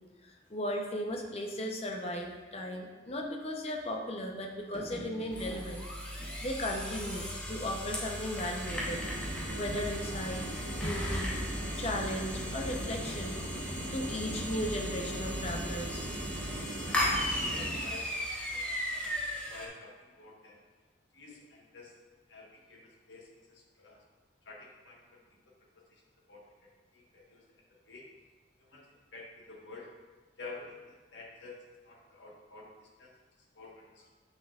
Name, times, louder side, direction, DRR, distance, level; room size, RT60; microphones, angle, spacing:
voice 1, 0.5-5.8 6.2-9.0 9.5-11.4 11.8-13.4 13.9-16.1, left 1 dB, 35° left, 2 dB, 0.7 m, -36 dB
sound 1, 4.6-6.0, right 1 dB, 50° right, 1.0 m, -47 dB
sound 2, 5.3-19.7, equal, 5° left, 0.9 m, -36 dB
sound 3, 8.7-17.8, right 1 dB, 85° right, 1.2 m, -40 dB
voice 2, 16.8-18.1 18.4-19.2 19.5-20.6 21.1-22.0 22.3-24.0 24.4-26.0 26.3-28.0 28.6-29.9 30.4-33.2 33.5-34.1, left 3 dB, 75° left, -3 dB, 1.3 m, -51 dB
7.7 x 6.0 x 2.4 m, 1.3 s
head